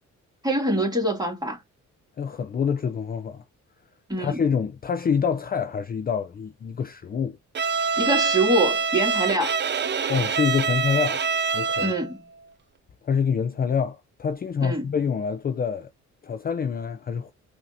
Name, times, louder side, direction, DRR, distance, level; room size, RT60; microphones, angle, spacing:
voice 1, 0.4-1.6 4.1-4.4 8.0-9.6 11.8-12.2 14.6-14.8, right 1 dB, 15° right, 2.2 m, -24 dB
voice 2, 2.2-3.4 4.2-7.4 10.1-11.2 11.5-11.9 13.0-15.9 16.2-17.3, left 6 dB, 30° left, 0.5 m, -26 dB
Bowed string instrument, 7.5-12.1, right 6 dB, 35° right, 0.6 m, -25 dB
5.5 x 2.8 x 2.5 m
cardioid pair, 90°, 30 cm